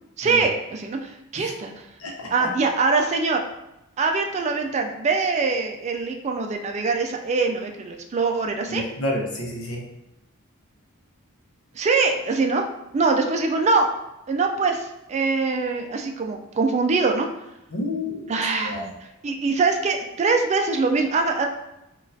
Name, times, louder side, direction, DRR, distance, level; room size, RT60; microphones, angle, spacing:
voice 1, 0.2-1.8 2.3-3.4 4.0-8.8 11.7-12.7 12.9-13.9 14.3-17.3 18.3-18.9 19.2-21.5, right 4 dB, 30° right, 3 dB, 0.3 m, -23 dB
voice 2, 2.0-2.5 8.7-9.8 17.7-18.3 18.6-18.9, left 1 dB, 80° left, -1 dB, 0.8 m, -29 dB
4.0 x 2.4 x 2.6 m, 0.89 s
head